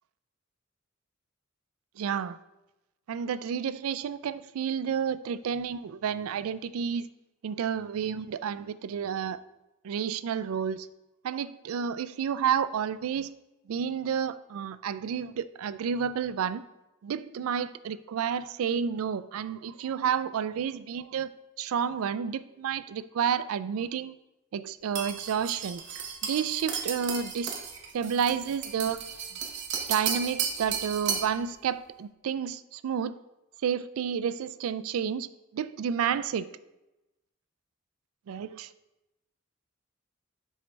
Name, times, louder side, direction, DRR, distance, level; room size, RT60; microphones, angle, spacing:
voice 1, 2.0-2.4 3.1-7.1 7.4-9.4 9.8-10.9 11.2-13.3 13.7-16.6 17.0-24.1 24.5-25.8 26.2-27.5 27.9-29.0 29.9-33.2 33.6-36.5 38.3-38.7, right 7 dB, 85° right, 15 dB, 0.3 m, -30 dB
sound 1, 25.0-31.4, right 7 dB, 55° right, 0.8 m, -34 dB
7.1 x 3.3 x 5.2 m, 0.97 s
head